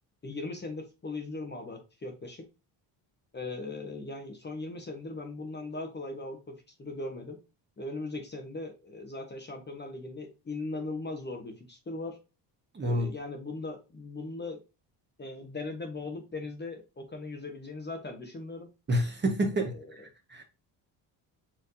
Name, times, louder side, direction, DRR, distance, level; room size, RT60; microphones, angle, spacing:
voice 1, 0.2-2.4 3.3-6.4 6.8-7.4 7.8-12.2 12.8-14.6 15.2-18.7 19.7-20.1, left 2 dB, 20° left, 1.0 m, -39 dB
voice 2, 12.7-13.1 18.9-20.4, equal, 25° right, 1.1 m, -29 dB
4.6 x 3.4 x 2.6 m
cardioid pair, 105°, 46 cm